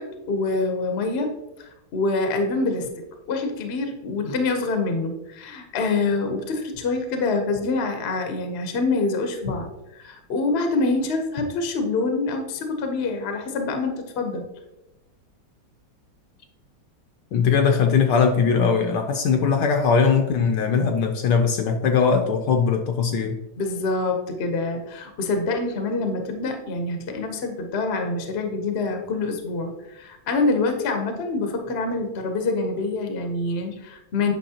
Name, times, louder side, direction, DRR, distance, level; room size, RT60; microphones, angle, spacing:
voice 1, 0.0-2.9 3.3-14.5 23.6-34.3, left 3 dB, 50° left, 5 dB, 0.8 m, -26 dB
voice 2, 17.3-23.4, left 6 dB, 70° left, 5 dB, 1.1 m, -20 dB
9.1 x 5.7 x 2.8 m, 0.96 s
omnidirectional pair, 2.2 m